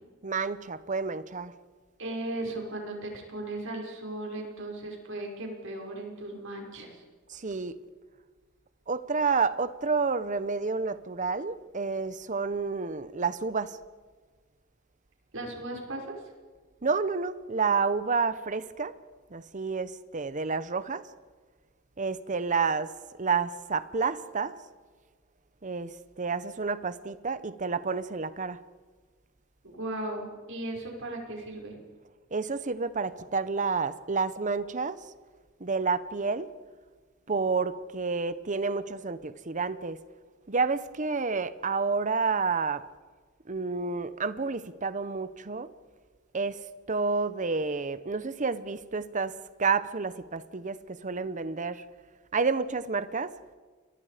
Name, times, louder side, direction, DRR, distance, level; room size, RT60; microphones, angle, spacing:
voice 1, 0.2-1.5 7.3-7.8 8.9-13.8 16.8-18.9 19.3-21.0 22.0-22.9 23.2-24.5 25.6-28.6 32.3-35.0 35.6-36.5 37.3-40.0 40.5-42.8 43.5-45.7 46.3-51.8 52.3-53.3, right 4 dB, 35° right, 0.9 m, -29 dB
voice 2, 2.0-7.0 15.3-16.1 29.6-31.8, right 1 dB, 65° right, 5.7 m, -37 dB
29.5 x 23.5 x 5.1 m
head